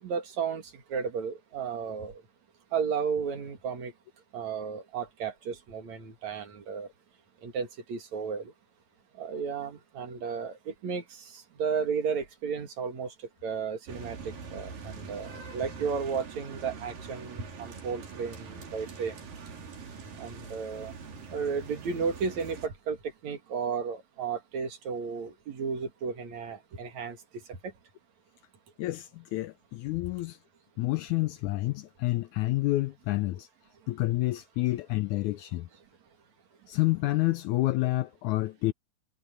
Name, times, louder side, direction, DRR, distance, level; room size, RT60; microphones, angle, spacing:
voice 1, 0.0-2.2 2.7-3.9 4.3-6.9 7.4-8.5 9.2-13.1 13.4-19.1 20.2-20.9 21.3-23.0 23.2-27.7, right 6 dB, 60° right, 3.2 m, -33 dB
sound 1, 13.9-22.7, right 5 dB, 85° right, 5.5 m, -43 dB
voice 2, 28.8-30.4 30.8-33.5 33.9-35.7 36.7-38.7, left 18 dB, 80° left, 1.8 m, -29 dB
omnidirectional pair, 3.8 m